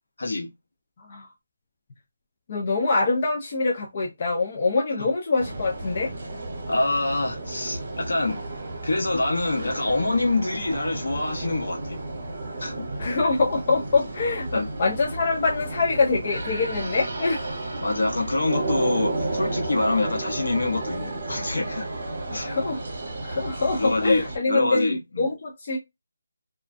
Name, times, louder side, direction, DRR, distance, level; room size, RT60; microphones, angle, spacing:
voice 1, 0.2-0.5 6.7-8.4 8.8-12.0 12.6-12.7 14.5-14.7 17.8-21.9 22.3-22.5 23.7-25.2, left 2 dB, 70° left, 0.9 m, -25 dB
voice 2, 1.0-1.3 2.5-6.1 13.0-17.5 22.5-22.8 23.2-25.8, left 3 dB, 30° left, 0.4 m, -24 dB
sound 1, 5.4-24.4, right 2 dB, 45° right, 0.9 m, -32 dB
2.4 x 2.1 x 2.4 m
figure-of-eight pair, 170°, 0 cm